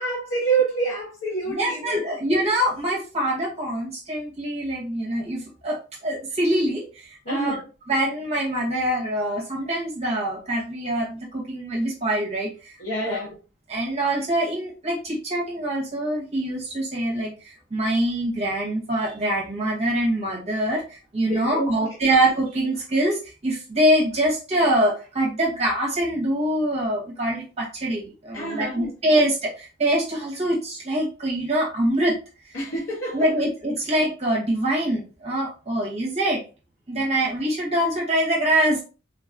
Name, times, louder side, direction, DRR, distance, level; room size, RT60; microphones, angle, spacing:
voice 1, 0.0-2.1 7.3-7.6 12.8-13.3 21.2-21.8 28.3-28.9 32.5-33.3, right 3 dB, 90° left, 0.7 m, -27 dB
voice 2, 1.5-7.6 7.9-12.7 13.0-13.2 13.7-32.2 32.5-32.6 33.1-36.4 36.9-38.8, right 1 dB, 35° right, 0.7 m, -24 dB
3.5 x 2.3 x 2.4 m
head